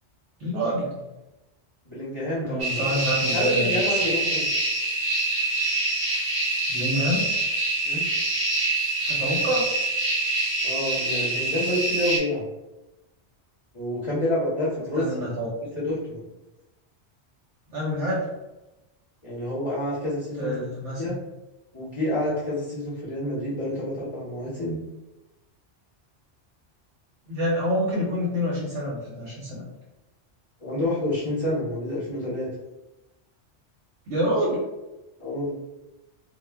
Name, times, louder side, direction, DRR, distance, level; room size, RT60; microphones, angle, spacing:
voice 1, 0.4-0.9 2.4-4.0 6.7-7.3 9.1-9.7 15.0-15.5 17.7-18.3 20.4-21.0 27.3-29.6 34.1-34.6, equal, 90° right, -5 dB, 1.0 m, -27 dB
voice 2, 1.9-2.8 3.3-4.5 7.8-8.1 10.6-12.4 13.7-15.3 15.7-16.2 19.2-20.7 21.0-21.1 21.7-24.8 30.6-32.5 35.2-35.5, left 1 dB, 35° left, -8 dB, 0.6 m, -28 dB
sound 1, 2.6-12.2, right 2 dB, 25° right, 0.6 m, -25 dB
2.1 x 2.1 x 3.3 m, 1.0 s
omnidirectional pair, 1.2 m